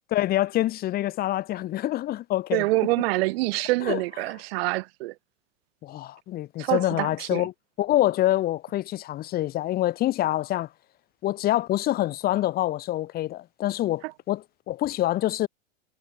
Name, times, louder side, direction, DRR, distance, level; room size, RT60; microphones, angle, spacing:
voice 1, 0.1-2.7 3.8-4.0 5.8-7.5 7.8-10.7 11.2-15.5, left 14 dB, 25° left, 1.0 m, -26 dB
voice 2, 2.5-5.1 6.6-7.5, right 21 dB, 50° right, 2.1 m, -26 dB
hypercardioid pair, 130°, 38 cm